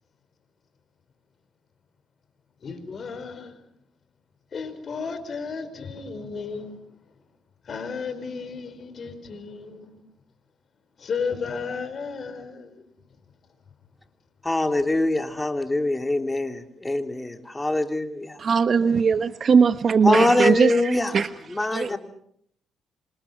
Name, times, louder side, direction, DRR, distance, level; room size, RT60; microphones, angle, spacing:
voice 1, 2.6-3.5 4.5-6.7 7.7-10.0 11.0-12.8 21.9-22.0, left 5 dB, 50° left, 4.8 m, -33 dB
voice 2, 14.4-18.4 20.0-21.1 21.5-22.0, left 2 dB, 15° left, 2.8 m, -23 dB
voice 3, 18.4-21.3 21.7-21.9, right 6 dB, 50° right, 1.1 m, -20 dB
27.0 x 27.0 x 5.9 m
cardioid pair, 90°, 0 cm